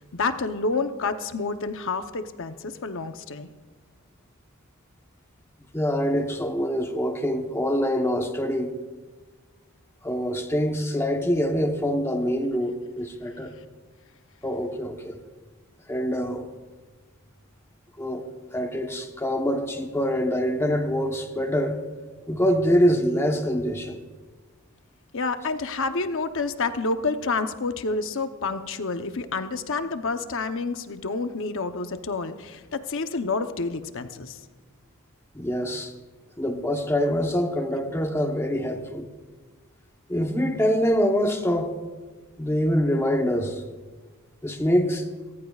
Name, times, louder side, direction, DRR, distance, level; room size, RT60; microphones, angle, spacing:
voice 1, 0.1-3.5 25.1-34.4, left 3 dB, 60° left, 0.8 m, -29 dB
voice 2, 5.7-8.7 10.0-13.5 14.4-15.2 15.9-16.5 18.0-18.3 18.5-21.8 22.3-24.0 35.3-35.9 36.4-39.1 40.1-41.7 42.4-43.6 44.4-45.0, equal, 10° left, 1.0 m, -25 dB
27.5 x 14.5 x 2.4 m
head